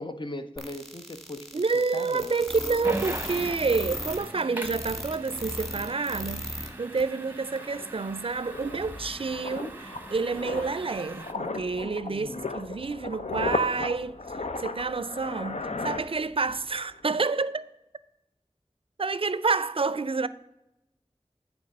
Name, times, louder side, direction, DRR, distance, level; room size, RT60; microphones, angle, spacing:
voice 1, 0.0-1.4 1.7-2.4 12.0-12.5 15.7-15.9, left 2 dB, 45° left, 0.7 m, -39 dB
sound 1, 0.6-6.7 7.0-7.1 7.6-7.7, left 1 dB, ahead, 1.6 m, -36 dB
voice 2, 1.5-14.2 14.6-17.7 19.0-20.3, right 4 dB, 55° right, 0.4 m, -29 dB
sound 2, 2.8-11.3, right 1 dB, 15° right, 0.8 m, -41 dB
sound 3, 7.2-7.3 7.6-16.7 16.9-17.2, left 3 dB, 90° left, 0.6 m, -36 dB
9.2 x 3.6 x 6.6 m
wide cardioid pair, 40°, 11 cm